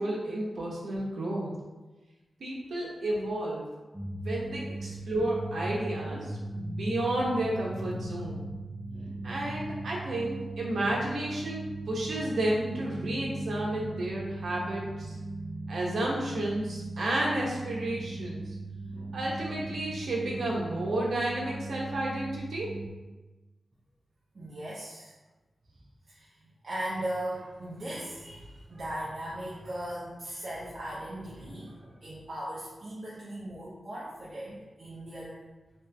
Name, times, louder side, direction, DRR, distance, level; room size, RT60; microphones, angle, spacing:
voice 1, 0.0-1.5 2.4-3.7 4.2-8.4 9.2-15.2 15.7-18.5 19.1-22.7, right 1 dB, 80° right, -4 dB, 0.9 m, -32 dB
sound 1, 3.9-22.9, right 2 dB, ahead, 0.6 m, -38 dB
voice 2, 24.3-25.1 26.1-35.4, right 1 dB, 45° right, -8 dB, 0.7 m, -38 dB
3.2 x 2.9 x 3.3 m, 1.2 s
wide cardioid pair, 135°, 0 cm